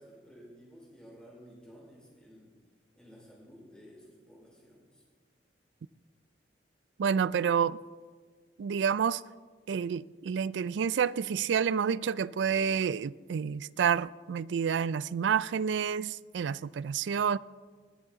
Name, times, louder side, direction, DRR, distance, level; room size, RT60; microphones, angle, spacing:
voice 1, 0.0-2.5 2.9-5.0, equal, 5° left, 4.7 m, -53 dB
voice 2, 7.0-7.8 8.6-9.2 9.7-17.4, right 7 dB, 80° right, 0.4 m, -29 dB
19.5 x 11.0 x 3.9 m
head